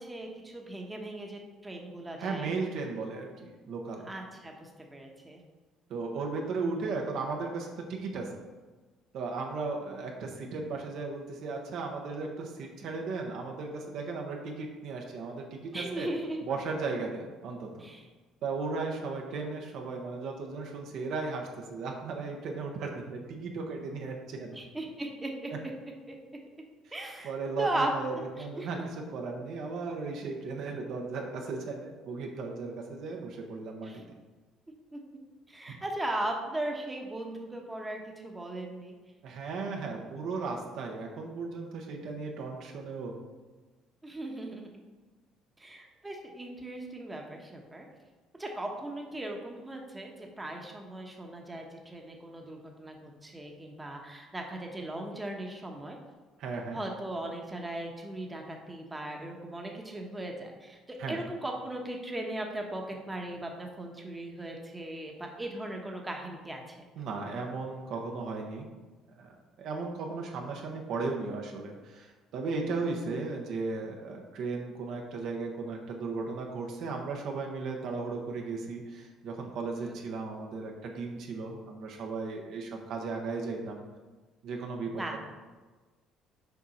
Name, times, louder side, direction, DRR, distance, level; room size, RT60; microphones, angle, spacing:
voice 1, 0.0-2.6 4.1-5.4 15.7-16.4 17.8-18.1 24.5-25.5 26.1-26.2 26.9-27.3 27.6-27.9 28.4-28.7 33.8-34.0 34.9-35.0 35.5-39.0 44.0-44.8 45.6-47.9 48.4-56.0 56.7-66.8 79.8-79.9 85.0-85.2, right 1 dB, 15° right, 1 dB, 1.1 m, -38 dB
voice 2, 2.2-4.1 5.9-8.3 9.1-16.1 16.4-17.8 18.4-24.6 27.2-34.0 35.7-35.8 39.2-43.2 56.4-56.8 61.0-61.2 67.0-68.7 69.2-69.3 69.6-83.8 84.4-84.9, right 4 dB, 70° right, 1 dB, 1.0 m, -36 dB
6.9 x 4.6 x 4.2 m, 1.3 s
supercardioid pair, 90°, 0 cm